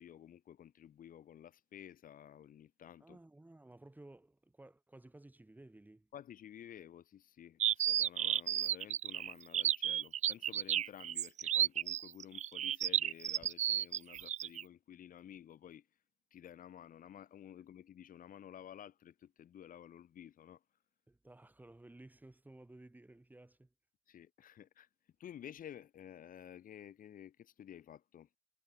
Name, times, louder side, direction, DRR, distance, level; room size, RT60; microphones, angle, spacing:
voice 1, 0.0-3.2 6.1-15.9 16.3-20.6 24.1-24.9 25.2-28.3, left 10 dB, 55° left, 7.0 m, -53 dB
voice 2, 3.0-6.1 21.1-23.7, right 2 dB, 10° right, 6.9 m, -56 dB
sound 1, 7.6-14.6, right 11 dB, 45° right, 0.5 m, -33 dB
cardioid pair, 110°, 17 cm